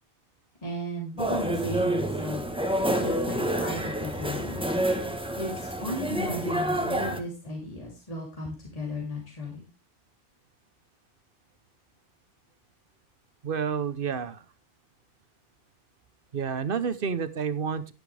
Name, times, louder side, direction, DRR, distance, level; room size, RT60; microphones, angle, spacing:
voice 1, 0.6-2.4 3.0-4.6 5.4-9.7, equal, 30° left, -2 dB, 3.4 m, -35 dB
sound 1, 1.2-7.2, right 1 dB, 5° right, 1.2 m, -28 dB
voice 2, 13.4-14.4 16.3-17.9, right 6 dB, 50° right, 14 dB, 1.0 m, -29 dB
11.0 x 11.0 x 3.4 m, 0.27 s
omnidirectional pair, 1.2 m